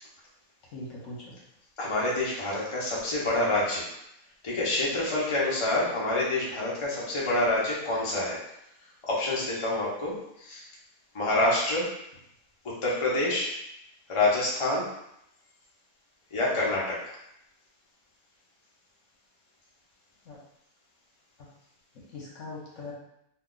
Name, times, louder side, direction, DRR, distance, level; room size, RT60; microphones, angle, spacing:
voice 1, 0.7-1.3 20.2-20.4 21.4-21.5 21.9-22.9, left 2 dB, 60° left, -4 dB, 1.1 m, -41 dB
voice 2, 1.8-3.9 4.4-8.4 9.0-10.7 11.1-11.9 12.6-13.5 14.1-14.9 16.3-17.2, left 2 dB, 35° left, -5 dB, 0.5 m, -27 dB
2.8 x 2.3 x 3.7 m, 0.79 s
omnidirectional pair, 1.5 m